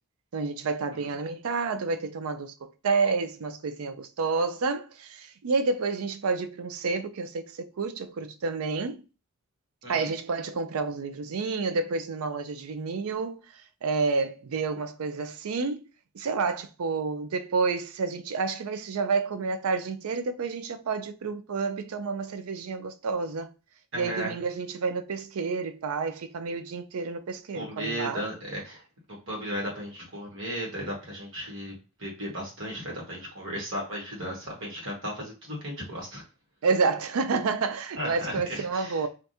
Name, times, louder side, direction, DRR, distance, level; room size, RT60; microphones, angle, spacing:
voice 1, 0.3-9.0 9.9-13.4 13.8-15.8 16.1-23.5 23.9-28.2 36.6-39.1, right 4 dB, 85° right, 0.4 m, -29 dB
voice 2, 23.9-24.4 27.5-28.8 29.1-31.7 32.0-36.2 38.0-39.1, equal, 60° right, 1.5 m, -35 dB
3.4 x 2.5 x 2.7 m
head